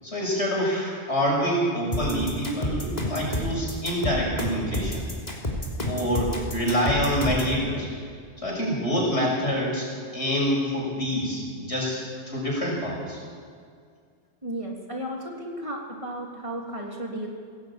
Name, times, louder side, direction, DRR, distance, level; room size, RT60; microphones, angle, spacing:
voice 1, 0.0-5.0 5.8-7.9 8.4-13.2, equal, 70° left, -3 dB, 6.8 m, -26 dB
sound 1, 1.9-7.6, left 1 dB, 35° left, 3.5 m, -29 dB
voice 2, 14.4-17.3, right 1 dB, 25° right, -1 dB, 2.9 m, -34 dB
21.0 x 17.5 x 8.8 m, 2.1 s
omnidirectional pair, 1.2 m